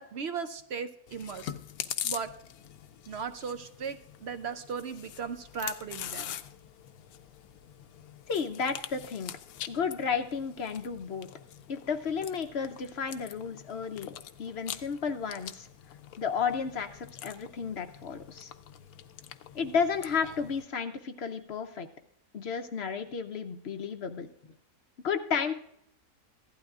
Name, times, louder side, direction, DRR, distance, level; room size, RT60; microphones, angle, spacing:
voice 1, 0.0-1.6 2.0-2.3 3.1-6.3, right 6 dB, 60° right, 10 dB, 0.7 m, -37 dB
Chewing mastication, 1.1-20.6, left 10 dB, 80° left, 1.1 m, -44 dB
voice 2, 8.3-9.3 9.7-11.3 11.7-14.1 14.4-15.7 16.2-18.5 19.5-21.9 22.3-24.3 25.0-25.5, left 6 dB, 55° left, 8 dB, 0.8 m, -32 dB
15.5 x 12.0 x 2.4 m, 0.75 s
omnidirectional pair, 1.6 m